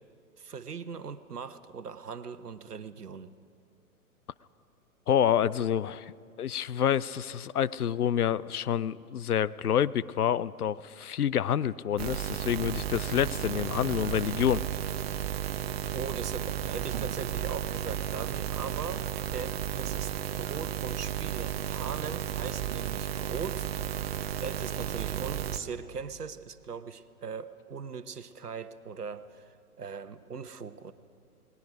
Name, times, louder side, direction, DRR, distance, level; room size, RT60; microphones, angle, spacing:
voice 1, 0.4-3.3 15.9-23.7 24.4-30.9, right 5 dB, 80° right, 12 dB, 1.1 m, -40 dB
voice 2, 5.1-6.1 6.4-14.6, left 9 dB, 75° left, 18 dB, 0.6 m, -28 dB
sound 1, 12.0-25.6, right 10 dB, 40° right, 0.9 m, -33 dB
28.0 x 20.0 x 5.1 m, 2.4 s
figure-of-eight pair, 115°, 46 cm